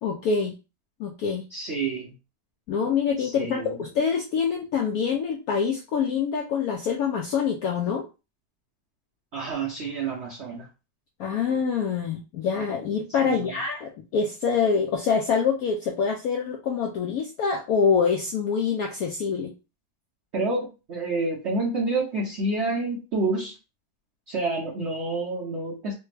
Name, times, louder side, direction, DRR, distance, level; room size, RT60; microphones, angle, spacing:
voice 1, 0.0-0.5 1.0-1.4 2.7-8.1 11.2-19.5, left 6 dB, 75° left, 1 dB, 0.8 m, -25 dB
voice 2, 1.5-2.1 3.2-3.8 9.3-10.7 13.2-13.6 20.3-23.6 24.3-25.9, right 3 dB, 70° right, -3 dB, 0.6 m, -28 dB
3.2 x 2.1 x 3.2 m, 0.29 s
omnidirectional pair, 2.0 m